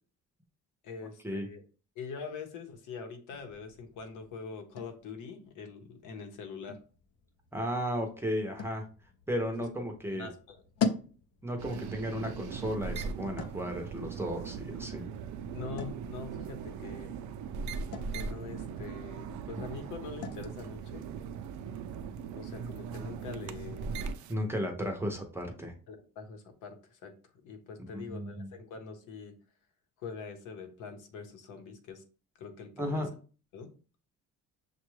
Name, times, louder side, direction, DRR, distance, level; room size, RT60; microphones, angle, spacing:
voice 1, 0.8-1.6 2.0-6.8 9.5-9.6 10.1-10.6 15.5-17.1 18.1-21.1 22.3-23.9 25.9-27.1 27.4-29.3 30.0-32.0 32.3-33.0 33.5-33.7, left 5 dB, 80° left, 6 dB, 0.9 m, -44 dB
sound 1, 3.3-22.9, left 5 dB, 55° left, 0.5 m, -44 dB
voice 2, 7.5-8.9 9.3-10.3 11.4-15.0 24.3-25.7 27.9-28.5 32.8-33.1, equal, 10° right, 2 dB, 0.5 m, -34 dB
sound 2, 11.6-24.3, right 6 dB, 70° right, 0.5 m, -39 dB
6.5 x 2.3 x 3.1 m, 0.38 s
cardioid pair, 170°, 30 cm